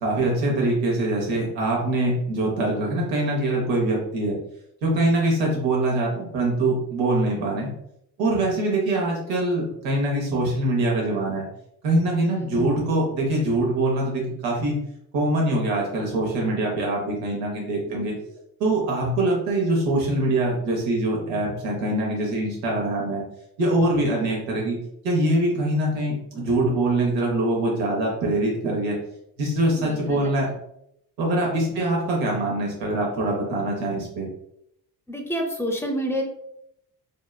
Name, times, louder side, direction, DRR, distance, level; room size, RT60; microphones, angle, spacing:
voice 1, 0.0-4.4 4.8-7.7 8.2-11.5 11.8-14.8 15.1-18.1 18.6-23.2 23.6-24.8 25.0-29.0 29.4-30.5 31.2-34.3, right 2 dB, 90° right, -2 dB, 0.9 m, -23 dB
voice 2, 17.9-18.3 24.1-24.3 29.7-30.3 31.8-31.9 35.1-36.2, equal, 5° left, 1 dB, 0.6 m, -30 dB
2.7 x 2.3 x 2.2 m, 0.77 s
hypercardioid pair, 50°, 47 cm